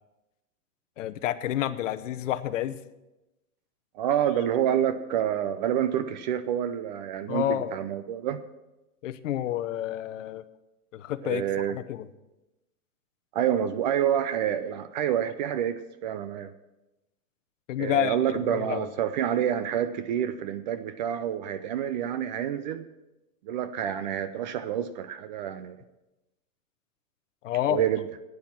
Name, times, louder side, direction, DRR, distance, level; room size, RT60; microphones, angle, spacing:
voice 1, 1.0-2.7 7.3-7.7 9.0-10.4 10.9-11.4 11.7-12.1 17.7-18.9 27.4-27.8, left 12 dB, 55° left, 13 dB, 0.9 m, -29 dB
voice 2, 3.9-8.4 11.2-11.8 13.3-16.5 17.8-22.9 23.4-25.8 27.7-28.1, right 10 dB, 30° right, 12 dB, 0.5 m, -28 dB
11.5 x 9.6 x 5.9 m, 0.98 s
hypercardioid pair, 130°, 45 cm